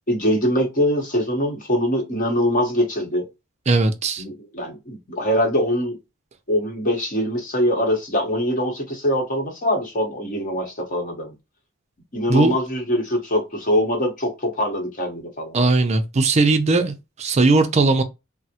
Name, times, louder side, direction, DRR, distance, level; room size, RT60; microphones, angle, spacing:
voice 1, 0.1-3.3 4.2-6.0 6.5-11.3 12.1-15.6, equal, 40° left, 0.9 m, -23 dB
voice 2, 3.7-4.2 12.3-12.5 15.5-18.0, right 3 dB, 30° right, 0.4 m, -18 dB
3.4 x 2.0 x 2.7 m
head